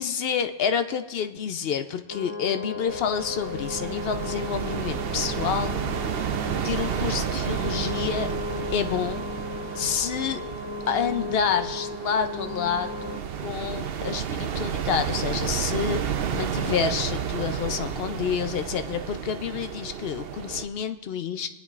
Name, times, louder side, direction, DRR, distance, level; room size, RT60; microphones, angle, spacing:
voice 1, 0.0-5.8 6.1-6.3 6.6-8.3 8.7-9.3 9.8-10.4 10.9-21.5, left 7 dB, 60° left, 9 dB, 0.7 m, -28 dB
sound 1, 2.1-13.2, left 3 dB, 15° left, 1.9 m, -35 dB
sound 2, 2.9-20.7, right 8 dB, 55° right, 0.7 m, -31 dB
28.5 x 9.8 x 2.4 m, 1.1 s
omnidirectional pair, 1.4 m